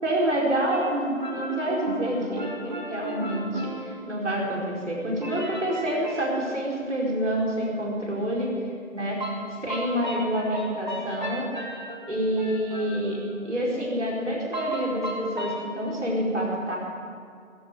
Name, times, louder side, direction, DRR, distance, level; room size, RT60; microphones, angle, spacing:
voice 1, 0.0-8.5 8.9-9.2 9.6-11.5 12.1-16.8, right 1 dB, 60° right, -4 dB, 4.9 m, -27 dB
sound 1, 0.7-4.5 5.2-6.4 9.2-13.3 14.5-15.7, equal, 35° right, 2.0 m, -35 dB
21.0 x 7.3 x 9.5 m, 2.3 s
figure-of-eight pair, 165°, 41 cm